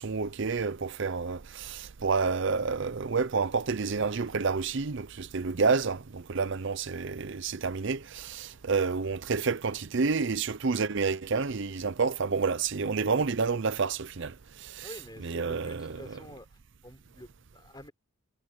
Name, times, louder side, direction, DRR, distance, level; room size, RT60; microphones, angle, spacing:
voice 1, 0.0-14.9 15.2-16.2, right 4 dB, 55° right, 0.6 m, -29 dB
voice 2, 14.8-16.5 16.8-17.9, left 1 dB, 20° left, 4.0 m, -47 dB
head